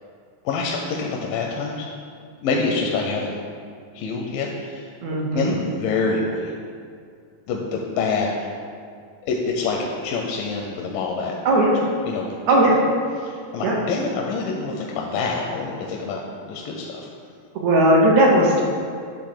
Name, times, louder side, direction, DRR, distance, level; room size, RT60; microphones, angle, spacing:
voice 1, 0.5-1.9 2.4-3.3 3.9-4.9 5.3-6.5 7.5-8.5 9.2-11.4 12.1-12.3 12.7-12.8 13.2-17.1, left 4 dB, 85° left, 0 dB, 2.4 m, -26 dB
voice 2, 5.0-5.5 11.5-11.8 12.5-12.8 13.6-13.7 17.6-18.6, right 1 dB, 65° right, -2 dB, 1.9 m, -17 dB
10.0 x 3.5 x 6.6 m, 2.2 s
omnidirectional pair, 4.0 m